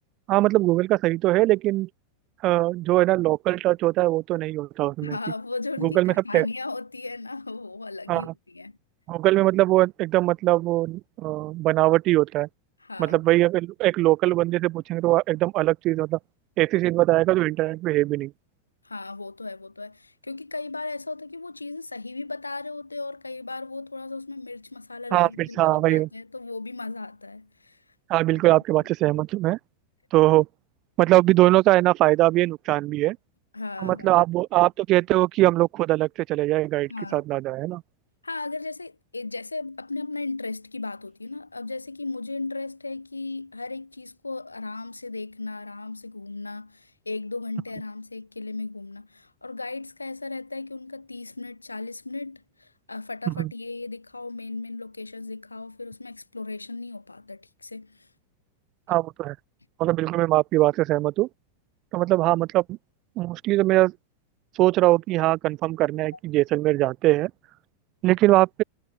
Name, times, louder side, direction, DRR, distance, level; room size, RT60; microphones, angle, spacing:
voice 1, 0.3-1.9 2.4-5.2 5.8-6.5 8.1-8.3 9.1-12.5 13.0-16.2 16.6-18.3 25.1-26.1 28.1-29.6 30.1-30.5 31.0-33.2 33.8-37.8 53.3-53.5 58.9-59.4 59.8-61.3 61.9-62.8 63.2-63.9 64.6-67.3 68.0-68.6, right 17 dB, 35° right, 0.3 m, -21 dB
voice 2, 5.0-8.8 12.8-13.2 18.8-27.8 33.5-34.2 36.9-37.2 38.2-58.1, left 3 dB, 80° left, 0.8 m, -36 dB
figure-of-eight pair, 90°, 0 cm